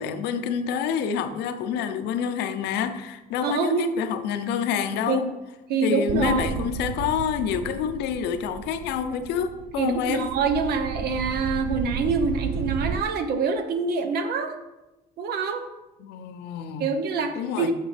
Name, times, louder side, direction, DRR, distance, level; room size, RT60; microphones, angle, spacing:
voice 1, 0.0-5.3 5.8-10.3 16.0-16.9 17.4-17.7, left 7 dB, 85° left, 0.7 m, -27 dB
voice 2, 3.4-3.9 5.1-5.3 5.7-6.4 9.8-14.5 15.2-15.6 16.8-17.7, right 4 dB, 70° right, 1.0 m, -25 dB
sound 1, 6.1-13.0, right 7 dB, 55° right, 0.5 m, -33 dB
8.8 x 6.1 x 3.4 m
cardioid pair, 110°, 17 cm